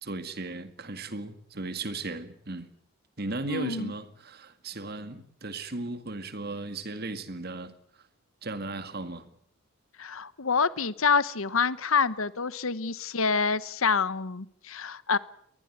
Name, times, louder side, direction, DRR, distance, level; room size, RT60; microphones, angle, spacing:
voice 1, 0.0-2.7 3.2-7.7 8.4-9.3, right 2 dB, 45° right, 2.0 m, -36 dB
voice 2, 3.5-3.9 10.0-15.2, left 5 dB, 70° left, 1.1 m, -27 dB
22.5 x 20.0 x 9.3 m
head